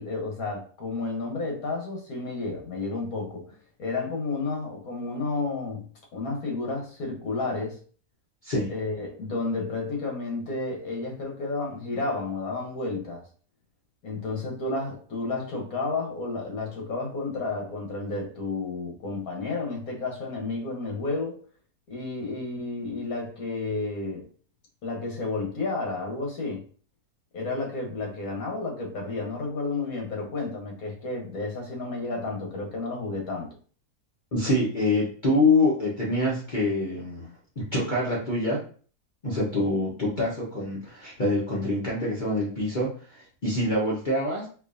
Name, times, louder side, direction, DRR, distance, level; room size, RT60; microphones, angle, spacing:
voice 1, 0.0-7.8 8.7-13.3 14.0-21.4 21.9-24.3 24.8-26.6 27.3-33.5, left 3 dB, 65° left, 0 dB, 1.5 m, -31 dB
voice 2, 34.3-37.3 37.6-38.6 39.2-44.5, left 2 dB, 40° left, -6 dB, 0.9 m, -25 dB
4.6 x 2.5 x 2.6 m, 0.42 s
omnidirectional pair, 1.7 m